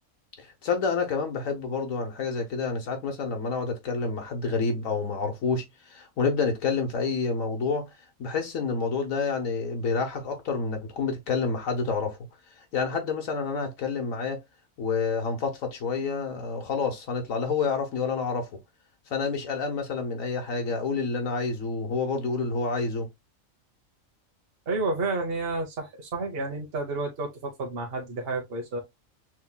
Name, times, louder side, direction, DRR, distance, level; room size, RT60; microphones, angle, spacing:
voice 1, 0.4-7.9 8.2-12.2 12.7-14.4 14.8-18.5 19.1-23.1, left 4 dB, 85° left, 1.4 m, -28 dB
voice 2, 24.7-28.8, right 3 dB, 50° right, 1.3 m, -30 dB
6.2 x 3.0 x 2.2 m
omnidirectional pair, 1.4 m